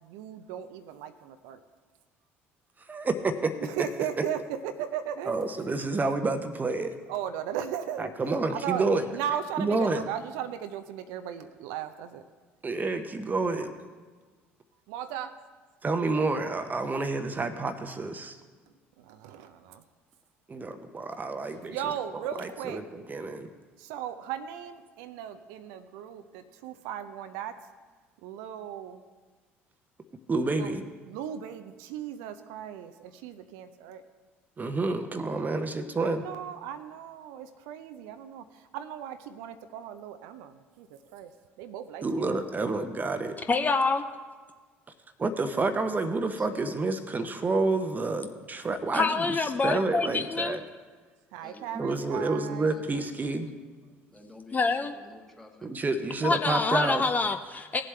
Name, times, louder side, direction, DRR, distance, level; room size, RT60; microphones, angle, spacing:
voice 1, 0.0-1.6 3.6-5.3 5.6-5.7 7.1-8.1 8.5-8.8 9.1-12.2 13.5-13.7 14.9-15.3 19.0-19.8 21.7-22.8 23.8-27.6 28.2-29.0 30.5-30.7 31.1-34.0 35.3-35.6 36.0-41.3 41.6-42.3 51.3-52.7, right 9 dB, 65° right, 9 dB, 0.5 m, -37 dB
voice 2, 2.9-3.8 5.3-6.9 8.0-9.0 9.6-10.0 12.6-13.7 15.8-18.4 20.5-21.8 22.4-23.5 30.3-30.8 34.6-36.3 42.0-43.3 45.2-49.4 49.6-50.6 51.7-53.5 55.6-57.0, right 3 dB, 25° right, 9 dB, 0.9 m, -29 dB
voice 3, 43.5-44.0 48.9-50.6 54.5-54.9 56.2-57.8, left 4 dB, 25° left, 7 dB, 0.5 m, -26 dB
voice 4, 46.3-46.7 51.4-53.1 54.1-55.7, left 2 dB, 5° left, 1 dB, 1.7 m, -50 dB
18.5 x 7.6 x 3.3 m, 1.4 s
figure-of-eight pair, 60°, 7 cm